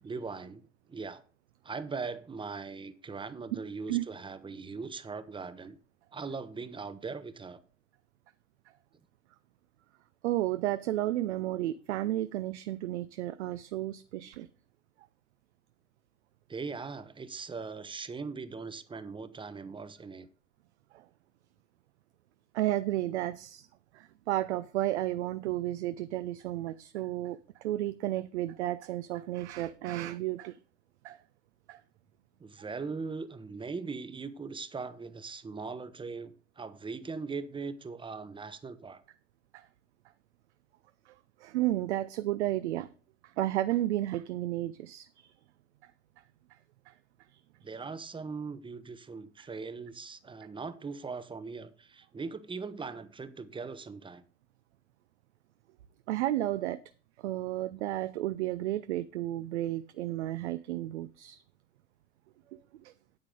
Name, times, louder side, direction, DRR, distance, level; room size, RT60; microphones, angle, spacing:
voice 1, 0.0-1.2 1.6-5.8 6.1-7.6 16.5-20.3 32.4-39.0 47.6-54.2, right 4 dB, 15° right, 0.8 m, -40 dB
voice 2, 10.2-14.5 20.9-21.1 22.5-23.7 23.9-30.6 31.0-31.2 31.7-31.8 39.5-39.7 41.1-41.2 41.4-42.9 43.4-45.3 46.9-47.0 49.4-49.5 56.1-56.8 57.2-61.4 62.5-62.9, right 14 dB, 70° right, 0.6 m, -32 dB
8.9 x 8.7 x 3.7 m
figure-of-eight pair, 80°, 36 cm